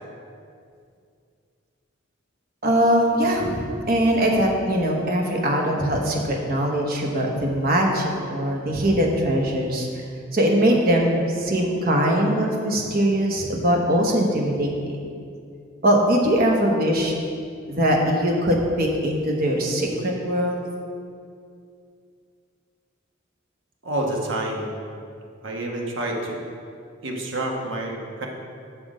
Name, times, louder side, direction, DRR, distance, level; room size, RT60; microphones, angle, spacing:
voice 1, 2.6-9.9 10.3-15.0 15.8-17.1 17.7-20.7, equal, 45° right, 0 dB, 1.1 m, -21 dB
voice 2, 23.8-24.7 25.4-26.4 27.0-28.3, right 1 dB, 65° right, 0 dB, 1.2 m, -28 dB
7.6 x 6.1 x 4.9 m, 2.4 s
head